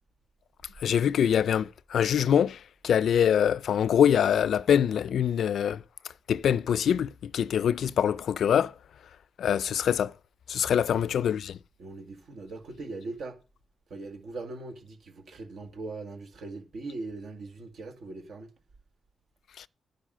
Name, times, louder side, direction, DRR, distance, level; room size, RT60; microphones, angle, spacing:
voice 1, 0.8-5.8 6.3-8.7 9.4-10.1 10.5-11.6 19.6-19.7, left 8 dB, 75° left, 0.4 m, -24 dB
voice 2, 11.8-13.4 13.9-18.5, right 3 dB, 75° right, 1.9 m, -40 dB
10.0 x 6.0 x 6.3 m
cardioid pair, 80°, 0 cm